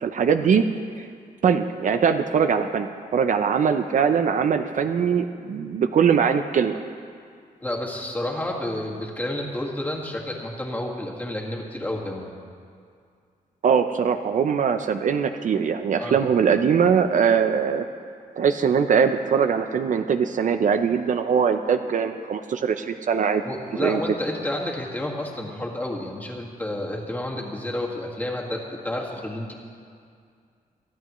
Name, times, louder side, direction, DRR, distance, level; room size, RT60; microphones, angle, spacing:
voice 1, 0.0-0.6 1.0-1.1 1.4-6.8 13.6-17.9 18.4-23.4 23.8-24.0, right 7 dB, 60° right, 8 dB, 0.6 m, -21 dB
voice 2, 7.6-12.3 16.0-16.2 23.4-29.5, left 1 dB, 10° left, -2 dB, 1.8 m, -30 dB
23.5 x 13.5 x 3.1 m, 2.3 s
wide cardioid pair, 155°, 15 cm